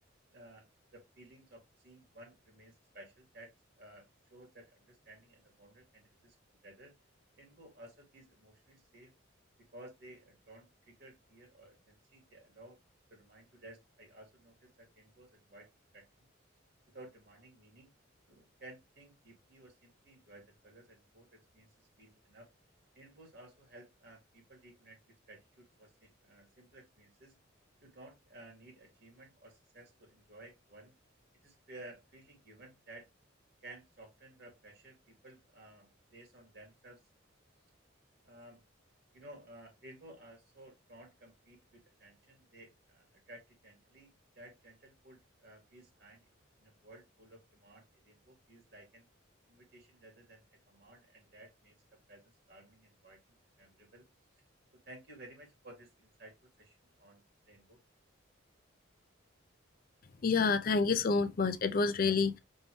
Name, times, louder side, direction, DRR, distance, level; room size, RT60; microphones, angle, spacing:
voice 1, 0.3-0.7 0.9-6.4 6.6-6.9 7.4-9.1 9.6-12.8 13.1-16.1 16.9-17.9 18.3-22.5 22.9-25.0 25.3-27.3 27.8-30.9 31.4-33.1 33.6-37.0 38.2-38.6 39.1-44.1 44.4-46.2 46.6-49.1 49.5-54.1 54.9-57.8, right 1 dB, 50° right, 2.3 m, -56 dB
voice 2, 60.2-62.4, left 4 dB, 45° left, 0.4 m, -28 dB
5.5 x 3.0 x 3.1 m
head